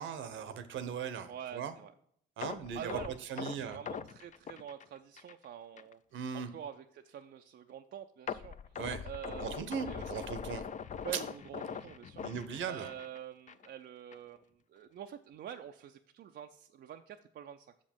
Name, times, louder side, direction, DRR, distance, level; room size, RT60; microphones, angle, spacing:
voice 1, 0.0-1.7 2.4-3.0 3.3-3.8 6.1-6.5 8.8-9.1 9.4-10.6 12.2-12.9, right 7 dB, 75° right, 11 dB, 0.9 m, -39 dB
voice 2, 1.3-1.9 2.7-6.0 6.3-10.2 11.0-12.2 12.7-14.4 14.7-17.7, right 9 dB, 60° right, 6 dB, 0.5 m, -46 dB
sound 1, 2.4-5.5 5.8-5.9 6.4-6.5 8.3-13.2 13.5-13.7 14.1-14.2, left 7 dB, 40° left, 0.4 m, -42 dB
6.8 x 5.2 x 5.3 m, 0.66 s
cardioid pair, 90°, 20 cm